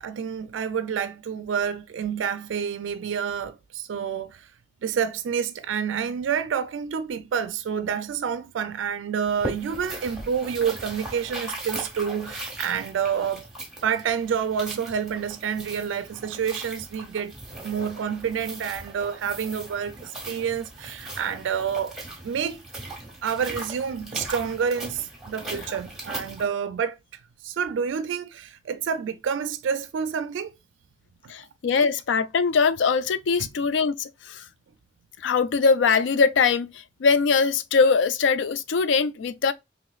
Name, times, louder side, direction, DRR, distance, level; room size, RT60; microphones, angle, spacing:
voice 1, 0.0-4.5 4.8-13.5 13.8-17.3 17.6-22.0 22.2-22.6 23.2-27.0 27.4-30.5 33.4-33.5, right 7 dB, 90° right, 0.3 m, -28 dB
sound 1, 9.3-26.5, right 2 dB, ahead, 1.4 m, -38 dB
voice 2, 31.3-34.4 35.2-36.7 37.0-39.5, left 5 dB, 80° left, 0.4 m, -22 dB
4.9 x 3.0 x 2.3 m
head